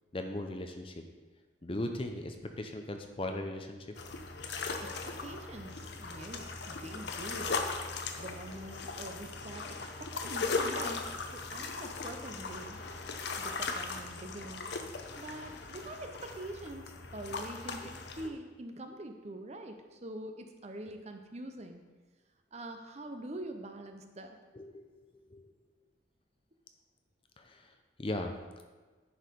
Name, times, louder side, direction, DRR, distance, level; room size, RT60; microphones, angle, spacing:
voice 1, 0.1-1.0 1.6-3.9 8.1-8.2 9.2-9.3 24.5-25.5 27.4-28.3, left 1 dB, 30° left, 5 dB, 0.6 m, -39 dB
sound 1, 4.0-18.3, left 4 dB, 60° left, 0.7 m, -38 dB
voice 2, 4.8-7.6 8.1-11.0 11.3-12.8 13.4-14.7 15.2-21.8 22.5-24.4, right 1 dB, 35° right, 5 dB, 0.7 m, -45 dB
10.0 x 4.8 x 5.2 m, 1.3 s
head